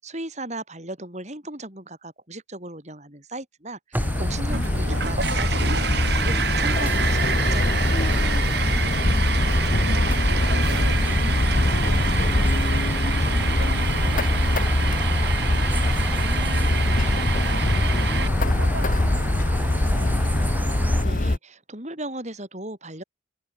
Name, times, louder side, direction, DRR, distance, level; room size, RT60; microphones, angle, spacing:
voice 1, 0.0-7.9 21.0-23.0, right 1 dB, 35° right, 6.2 m, -37 dB
sound 1, 3.9-21.0, right 1 dB, 10° right, 1.6 m, -31 dB
sound 2, 4.0-21.4, left 1 dB, 40° left, 1.0 m, -22 dB
sound 3, 4.5-18.3, right 7 dB, 55° right, 1.5 m, -29 dB
voice 2, 8.7-9.5 9.9-15.6 16.1-20.2, right 2 dB, 75° right, 3.7 m, -40 dB
open air
head